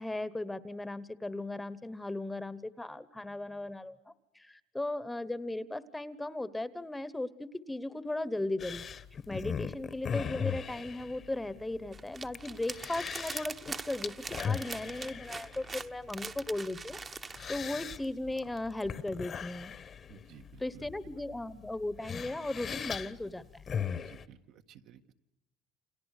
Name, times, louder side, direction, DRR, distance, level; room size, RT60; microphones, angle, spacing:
voice 1, 0.0-8.9 9.3-14.1 14.4-17.0 17.5-19.8 20.6-23.6, left 2 dB, 10° left, 16 dB, 1.1 m, -37 dB
sound 1, 8.6-24.3, left 7 dB, 35° left, 1.2 m, -40 dB
sound 2, 11.9-17.6, right 4 dB, 25° right, 1.1 m, -42 dB
voice 2, 20.1-20.9 23.9-25.1, right 9 dB, 65° right, 6 dB, 1.6 m, -55 dB
29.5 x 27.5 x 6.6 m, 0.97 s
cardioid pair, 130°, 0 cm